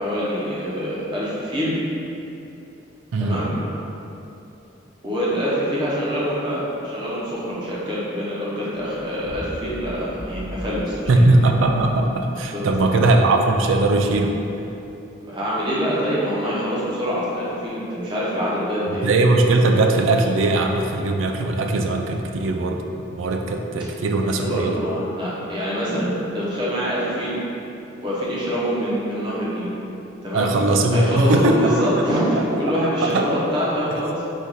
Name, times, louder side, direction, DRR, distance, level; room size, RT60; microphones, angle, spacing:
voice 1, 0.0-1.7 3.2-3.5 5.0-11.3 12.5-12.6 12.9-13.0 15.2-19.1 24.1-27.4 28.0-29.7 30.2-30.5 30.9-34.2, equal, 25° right, -8 dB, 1.0 m, -25 dB
voice 2, 3.1-3.5 11.1-14.4 18.9-22.8 23.1-24.8 30.3-31.9 32.5-32.6 33.0-33.2, right 2 dB, 85° right, 3 dB, 0.4 m, -19 dB
sound 1, 8.7-14.9, equal, ahead, 0.5 m, -38 dB
4.1 x 2.6 x 4.7 m, 2.9 s
head